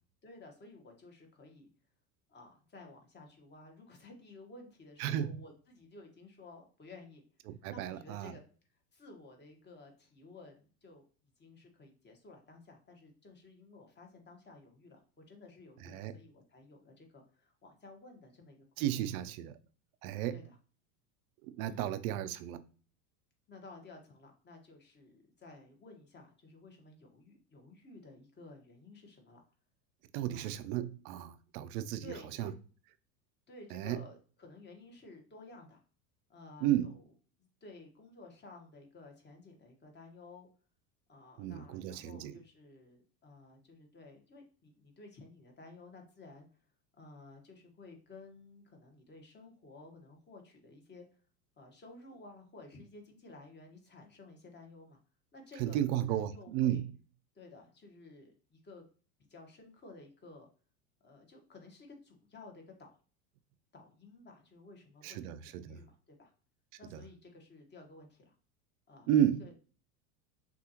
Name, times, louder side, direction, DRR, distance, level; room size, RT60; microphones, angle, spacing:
voice 1, 0.2-1.7 2.3-7.2 7.7-8.4 8.7-11.0 11.4-19.1 20.3-20.6 21.6-21.8 23.5-29.4 30.3-30.5 32.0-32.5 33.5-35.8 36.3-37.0 37.4-40.5 41.1-46.5 47.0-51.1 51.6-55.0 55.3-56.9 57.3-58.8 59.3-60.5 61.0-63.0 63.7-66.3 66.8-68.3 68.9-69.1 69.4-69.5, left 2 dB, 20° left, 1.4 m, -54 dB
voice 2, 5.0-5.4 7.5-8.3 15.9-16.1 18.8-19.6 20.0-20.4 21.6-22.6 30.1-32.1 32.4-32.5 33.7-34.0 36.6-36.9 41.4-42.4 55.6-56.9 65.0-65.8 69.1-69.4, right 11 dB, 65° right, 0.7 m, -33 dB
6.2 x 2.7 x 2.9 m
supercardioid pair, 110°, 46 cm